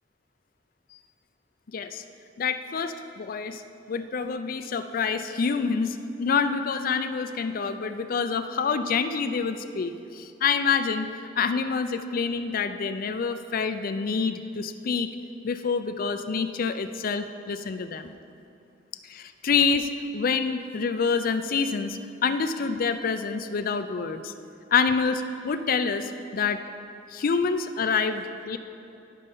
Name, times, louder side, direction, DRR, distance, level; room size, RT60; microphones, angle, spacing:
voice 1, 1.7-2.0 2.4-3.6 3.9-11.1 11.4-15.1 15.4-18.1 19.1-24.3 24.7-26.6 27.1-28.6, left 5 dB, 50° left, 9 dB, 0.4 m, -27 dB
11.5 x 5.4 x 5.4 m, 2.6 s
head